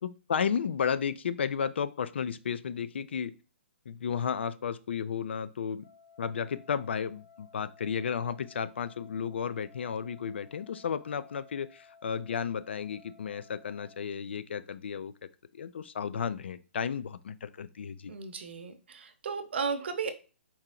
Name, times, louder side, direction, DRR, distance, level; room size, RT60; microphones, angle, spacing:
voice 1, 0.0-3.3 3.9-5.8 6.2-15.1 15.5-18.1, left 7 dB, 60° left, 14 dB, 0.3 m, -33 dB
sound 1, 5.8-14.0, left 5 dB, 85° left, 1.0 m, -58 dB
voice 2, 18.1-20.1, right 5 dB, 55° right, 8 dB, 0.7 m, -34 dB
4.4 x 2.8 x 3.7 m, 0.33 s
hypercardioid pair, 175°, 7 cm